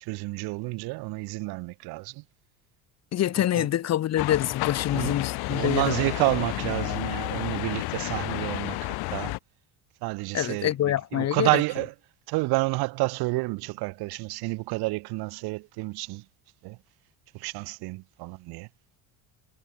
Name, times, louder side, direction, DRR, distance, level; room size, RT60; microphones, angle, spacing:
voice 1, 0.0-2.2 3.5-3.7 4.9-5.2 5.5-9.3 10.0-10.7 11.1-11.9 12.3-16.2 16.6-16.8 17.3-18.7, right 24 dB, 75° right, 1.3 m, -29 dB
voice 2, 3.1-6.0 10.3-11.6, left 12 dB, 40° left, 1.0 m, -26 dB
sound 1, 4.2-9.4, left 22 dB, 75° left, 2.3 m, -31 dB
cardioid pair, 115°, 38 cm